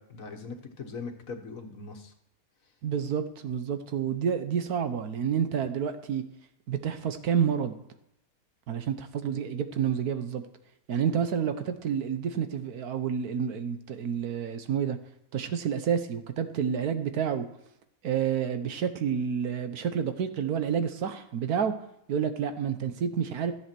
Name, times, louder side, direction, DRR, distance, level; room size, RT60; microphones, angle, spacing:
voice 1, 0.0-2.1, left 4 dB, 65° left, 5 dB, 1.8 m, -40 dB
voice 2, 2.8-6.2 6.7-7.8 8.7-10.4 10.9-15.0 15.3-17.5 18.0-21.7 22.1-23.5, right 7 dB, 85° right, 9 dB, 1.5 m, -29 dB
14.5 x 7.9 x 6.0 m, 0.80 s
omnidirectional pair, 1.6 m